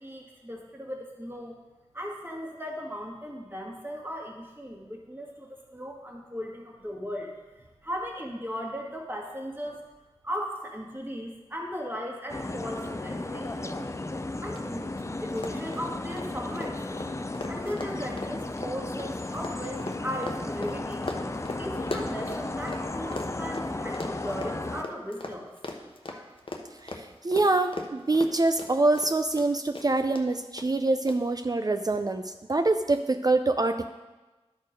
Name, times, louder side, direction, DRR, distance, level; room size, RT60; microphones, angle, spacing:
voice 1, 0.0-1.5 1.9-7.4 7.8-9.8 10.2-13.9 14.4-14.9 15.2-16.8 17.5-21.1 21.6-25.5 26.1-26.3, equal, 20° right, -1 dB, 1.8 m, -37 dB
sound 1, 12.3-24.8, left 2 dB, 25° left, 0.5 m, -34 dB
Run, 14.5-14.6 14.9-15.0 15.3-22.8 23.1-29.5 29.7-30.2 30.6-30.7 31.1-31.2, left 2 dB, 55° left, 0.9 m, -38 dB
voice 2, 26.8-33.9, right 2 dB, 35° right, 7 dB, 0.4 m, -25 dB
11.5 x 4.5 x 5.1 m, 1.2 s
wide cardioid pair, 40°, 11 cm